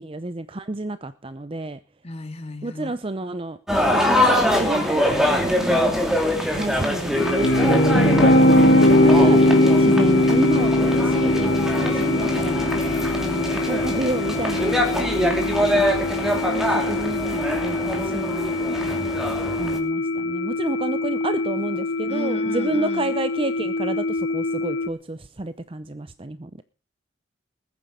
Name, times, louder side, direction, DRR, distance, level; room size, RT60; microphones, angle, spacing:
voice 1, 0.0-1.8 2.6-6.0 6.3-8.2 8.6-9.4 9.8-15.9 16.5-18.9 19.6-26.6, right 2 dB, 30° right, 12 dB, 0.7 m, -30 dB
voice 2, 2.0-3.0 22.1-23.2, left 1 dB, 35° left, 7 dB, 2.2 m, -34 dB
sound 1, 3.7-19.8, equal, ahead, 2.9 m, -24 dB
sound 2, 7.1-24.9, left 2 dB, 90° left, 1.2 m, -27 dB
sound 3, 7.1-16.2, left 1 dB, 60° left, 1.8 m, -19 dB
20.5 x 9.6 x 5.1 m, 0.35 s
head